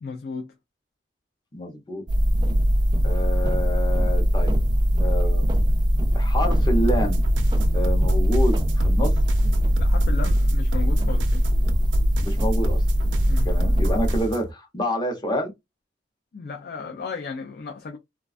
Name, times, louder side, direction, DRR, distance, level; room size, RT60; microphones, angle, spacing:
voice 1, 0.0-0.5 9.8-11.4 13.3-13.5 16.3-18.0, left 4 dB, 60° left, 0.4 m, -34 dB
voice 2, 1.5-2.0 3.0-4.6 5.0-5.5 6.1-7.2 7.7-9.1 12.2-12.8 13.4-15.5, equal, 25° left, 0.7 m, -28 dB
sound 1, 2.1-14.2, equal, 25° right, 0.3 m, -21 dB
sound 2, 6.9-14.5, equal, 90° right, 0.5 m, -31 dB
2.4 x 2.2 x 2.4 m
head